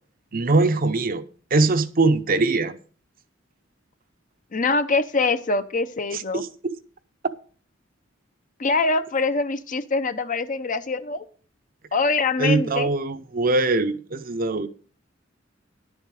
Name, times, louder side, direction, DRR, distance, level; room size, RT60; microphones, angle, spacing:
voice 1, 0.3-1.2 1.5-2.7 6.1-6.5 12.4-14.7, right 3 dB, 50° right, 0.8 m, -22 dB
voice 2, 4.5-6.4 8.6-11.3 11.9-12.9, left 3 dB, 45° left, 0.8 m, -24 dB
11.0 x 7.1 x 6.4 m
head